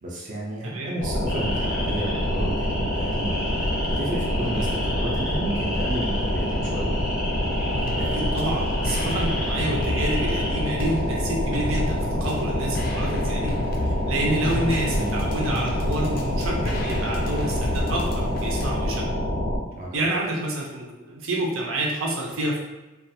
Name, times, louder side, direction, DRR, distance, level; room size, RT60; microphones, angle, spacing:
voice 1, 0.0-7.0 14.9-15.2 19.7-20.1, right 1 dB, 40° right, -4 dB, 0.4 m, -32 dB
sound 1, 1.0-19.6, equal, 90° left, 0.6 m, -26 dB
sound 2, 1.3-10.6, left 1 dB, 5° right, 0.7 m, -34 dB
sound 3, 7.7-18.7, left 2 dB, 45° left, 0.3 m, -34 dB
voice 2, 8.0-13.6 13.8-19.1 19.9-22.6, right 1 dB, 85° right, -2 dB, 0.6 m, -28 dB
2.3 x 2.3 x 2.7 m, 1.1 s
head